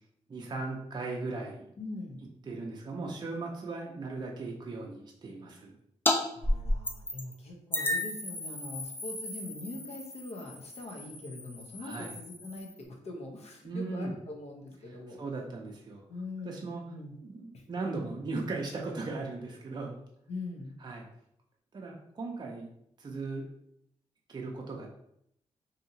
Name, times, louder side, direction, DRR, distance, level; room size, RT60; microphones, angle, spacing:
voice 1, 0.3-1.7 2.5-5.7 11.8-12.1 13.6-14.1 14.8-16.0 16.4-16.8 17.2-20.0 20.8-21.0 21.7-22.7 23.0-23.5 24.3-24.9, right 3 dB, 35° right, 0 dB, 0.5 m, -37 dB
voice 2, 1.8-2.2 6.4-15.2 16.1-17.1 17.5-17.6 20.3-20.7, left 2 dB, 65° left, 1 dB, 0.7 m, -42 dB
sound 1, 6.1-6.2 6.4-7.3 7.7-12.8, left 1 dB, 15° left, 0.5 m, -33 dB
2.7 x 2.7 x 2.7 m, 0.74 s
cardioid pair, 70°, 12 cm